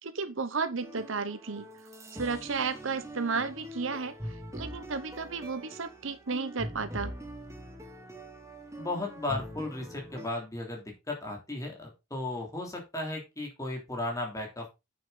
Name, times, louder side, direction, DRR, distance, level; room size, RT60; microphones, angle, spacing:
voice 1, 0.0-1.7 2.1-7.1, right 4 dB, 65° right, 0.9 m, -33 dB
sound 1, 0.8-10.3, equal, 15° right, 1.4 m, -43 dB
voice 2, 8.8-14.7, left 2 dB, 15° left, 3.1 m, -35 dB
8.6 x 7.2 x 3.9 m
head